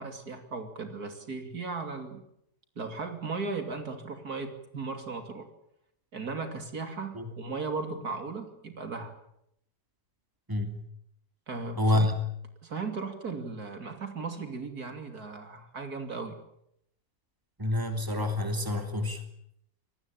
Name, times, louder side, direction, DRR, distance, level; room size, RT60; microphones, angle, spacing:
voice 1, 0.0-2.2 2.8-5.5 6.1-9.1 11.5-12.1 12.6-16.4, right 4 dB, 65° right, 7 dB, 3.3 m, -36 dB
voice 2, 10.5-10.8 11.8-12.1 17.6-19.2, left 1 dB, 10° right, 6 dB, 3.1 m, -27 dB
26.5 x 19.0 x 8.8 m, 0.75 s
omnidirectional pair, 1.8 m